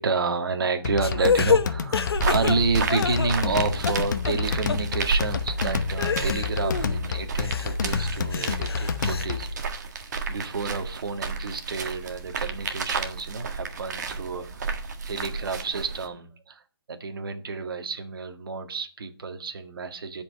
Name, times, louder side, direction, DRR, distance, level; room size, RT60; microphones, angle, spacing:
voice 1, 0.0-9.5 10.3-16.6 16.9-20.2, right 4 dB, 65° right, 6 dB, 1.8 m, -30 dB
sound 1, 0.8-9.6, left 5 dB, 50° left, 1.0 m, -29 dB
sound 2, 1.0-3.6 3.8-4.4 4.7-4.8 5.3-5.4 6.0-7.0 7.4-9.3, left 5 dB, 80° left, 1.1 m, -28 dB
sound 3, 2.1-16.1, right 4 dB, 45° right, 1.6 m, -32 dB
12.0 x 5.4 x 7.7 m, 0.40 s
hypercardioid pair, 170°, 13 cm